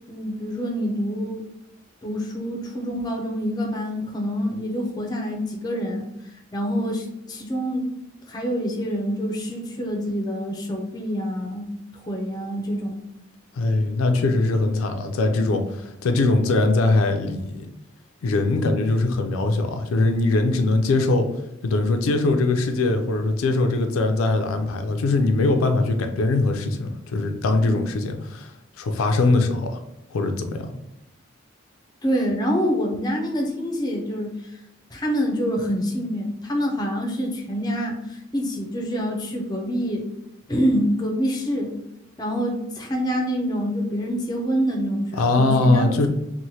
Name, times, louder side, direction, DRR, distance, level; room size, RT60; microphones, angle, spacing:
voice 1, 0.1-1.4 2.0-7.9 8.3-11.7 11.9-13.0 32.0-34.6 34.9-40.0 40.5-41.7 42.2-46.1, equal, 20° left, 1 dB, 0.4 m, -26 dB
voice 2, 13.6-17.7 18.2-21.3 21.6-28.5 28.8-29.8 30.1-30.7 45.2-46.1, left 2 dB, 85° left, 5 dB, 0.4 m, -21 dB
3.0 x 2.1 x 2.7 m, 0.86 s
head